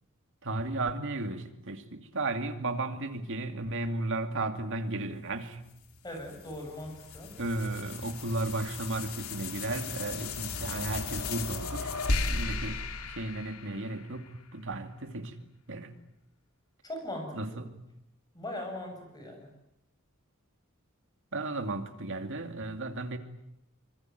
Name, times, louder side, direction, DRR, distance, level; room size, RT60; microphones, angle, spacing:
voice 1, 0.4-5.6 7.4-12.0 12.3-15.4 15.7-15.9 17.3-17.7 21.3-23.2, right 2 dB, 60° right, 7 dB, 2.5 m, -34 dB
sound 1, 5.7-14.3, left 3 dB, 85° left, 2.5 m, -36 dB
voice 2, 6.0-7.3 16.8-17.6 18.3-19.5, left 1 dB, 20° left, 4 dB, 7.3 m, -40 dB
25.0 x 22.5 x 9.3 m, 0.83 s
head